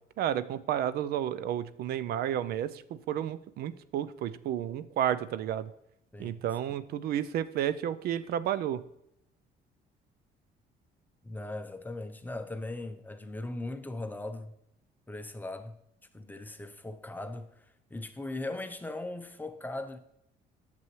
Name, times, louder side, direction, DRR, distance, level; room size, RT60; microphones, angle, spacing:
voice 1, 0.2-5.7 6.2-8.8, right 10 dB, 65° right, 0.4 m, -31 dB
voice 2, 11.2-14.5 15.1-15.8 16.1-17.7 17.9-20.0, left 2 dB, 10° left, 0.6 m, -39 dB
9.4 x 6.9 x 3.1 m
cardioid pair, 110°, 17 cm